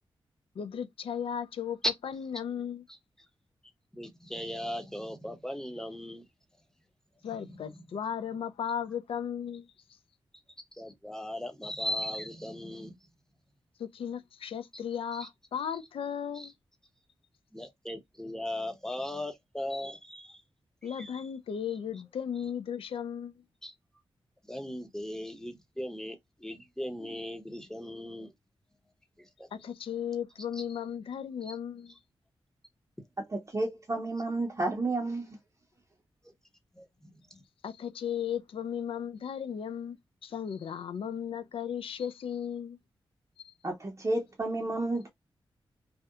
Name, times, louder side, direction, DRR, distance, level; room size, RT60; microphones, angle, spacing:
voice 1, 0.6-1.8 2.0-2.8 7.2-9.7 13.8-16.5 20.8-23.3 29.5-32.0 37.6-42.8 43.4-43.5, left 8 dB, 75° left, 0.3 m, -36 dB
voice 2, 3.9-6.2 7.3-7.9 10.7-13.0 14.7-14.8 15.1-15.3 16.3-16.5 17.5-20.4 20.8-21.3 23.6-23.7 24.5-28.3 29.4-29.5 30.5-30.6 31.5-31.6 36.7-37.4, left 1 dB, 5° left, 0.7 m, -38 dB
voice 3, 33.2-35.4 43.6-45.1, right 2 dB, 30° right, 0.6 m, -31 dB
2.7 x 2.1 x 2.3 m
cardioid pair, 45°, 10 cm